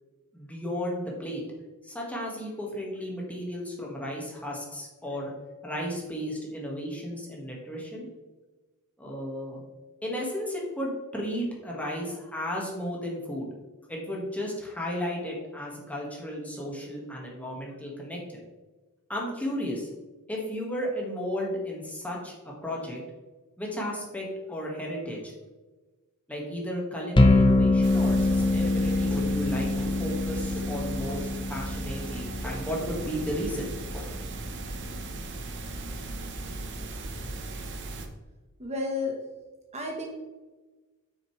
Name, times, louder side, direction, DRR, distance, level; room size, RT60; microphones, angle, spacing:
voice 1, 0.3-1.4 1.8-5.3 5.6-8.1 9.0-9.6 10.0-13.5 13.9-18.4 19.1-19.9 20.3-22.3 22.6-23.0 23.6-25.3 26.3-34.1, equal, 5° left, -3 dB, 1.7 m, -34 dB
sound 1, 27.2-37.2, left 2 dB, 20° left, 0.7 m, -26 dB
sound 2, 27.8-38.1, right 2 dB, 55° right, 1.0 m, -37 dB
voice 2, 38.6-39.2 39.7-40.1, left 2 dB, 30° right, 0 dB, 1.2 m, -31 dB
8.3 x 6.3 x 3.2 m, 1.2 s
head